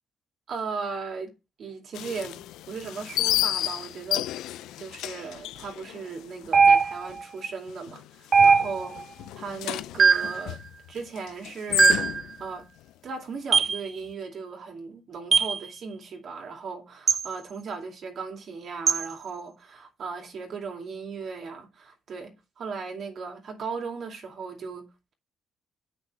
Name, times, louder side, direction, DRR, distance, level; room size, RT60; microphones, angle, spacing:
voice 1, 0.5-1.3 1.6-4.4 4.8-9.0 9.4-10.6 10.9-12.0 12.4-12.7 13.0-25.1, right 5 dB, 60° right, 2.5 m, -37 dB
sound 1, 1.9-6.8 7.1-7.2 7.7-8.1 8.4-12.5, left 13 dB, 90° left, 0.3 m, -31 dB
sound 2, 6.5-7.2 8.3-9.0 10.0-10.4 11.8-12.2 13.5-13.8 15.3-15.6 17.1-17.3 18.9-19.1, right 5 dB, 45° right, 0.4 m, -19 dB
8.3 x 5.9 x 4.6 m
cardioid pair, 90°, 0 cm